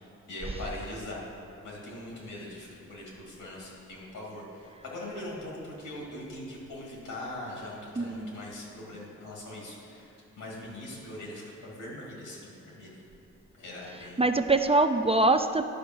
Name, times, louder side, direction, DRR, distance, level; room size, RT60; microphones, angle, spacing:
voice 1, 0.0-13.0 13.6-14.3, left 1 dB, 85° left, -3 dB, 2.5 m, -41 dB
voice 2, 8.0-8.3 14.2-15.6, right 2 dB, 20° right, 7 dB, 0.4 m, -23 dB
10.5 x 5.1 x 6.1 m, 2.7 s
cardioid pair, 60°, 31 cm